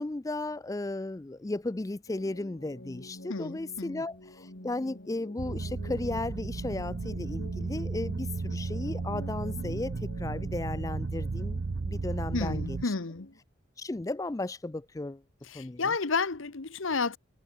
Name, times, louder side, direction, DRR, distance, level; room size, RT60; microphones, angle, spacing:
voice 1, 0.0-12.9 13.8-15.2 15.5-15.9, left 2 dB, 15° left, 0.4 m, -35 dB
sound 1, 2.1-13.4, left 1 dB, 55° left, 3.1 m, -49 dB
voice 2, 3.3-4.0 12.3-13.3 15.5-17.2, left 4 dB, 75° left, 1.1 m, -31 dB
sound 2, 5.4-12.8, right 3 dB, 55° right, 0.5 m, -34 dB
head